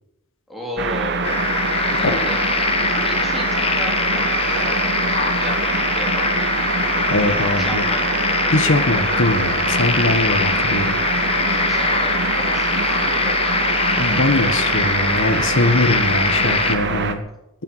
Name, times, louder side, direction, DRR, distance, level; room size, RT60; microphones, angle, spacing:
voice 1, 0.5-1.4 2.0-6.6 7.6-8.1 11.5-14.0, left 1 dB, ahead, -1 dB, 3.8 m, -34 dB
sound 1, 0.8-17.1, right 4 dB, 50° right, 1.3 m, -24 dB
sound 2, 1.2-16.8, left 5 dB, 25° left, 1.2 m, -23 dB
Laughter, 6.5-12.7 13.0-13.5, right 1 dB, 20° right, 5.6 m, -44 dB
voice 2, 7.1-7.8 8.5-11.0 14.0-17.2, left 2 dB, 60° left, 7 dB, 1.3 m, -21 dB
12.0 x 10.0 x 9.1 m, 0.87 s
head